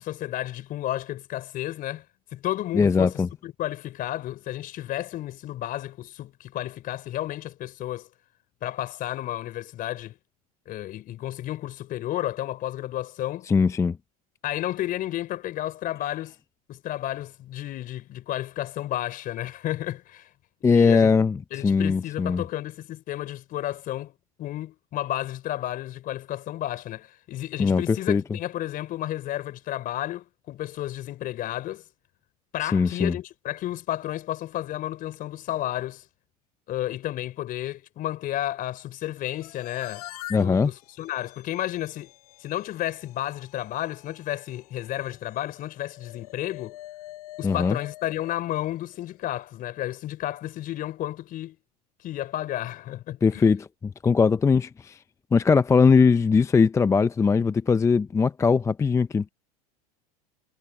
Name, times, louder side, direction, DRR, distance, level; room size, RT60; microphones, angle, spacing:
voice 1, 0.0-2.0 2.3-8.1 8.6-10.2 10.7-13.5 14.4-16.3 16.7-20.3 20.6-21.1 21.5-31.8 32.5-36.0 36.7-40.0 40.3-42.1 42.4-46.8 47.4-51.6 52.0-53.4, left 13 dB, 45° left, 4.3 m, -32 dB
voice 2, 2.7-3.3 13.5-14.0 20.6-22.4 27.6-28.2 32.6-33.2 40.3-40.7 47.4-47.8 53.2-55.0 55.3-59.3, left 5 dB, 15° left, 0.5 m, -20 dB
sound 1, 39.2-49.4, left 16 dB, 80° left, 4.2 m, -46 dB
supercardioid pair, 105°, 19 cm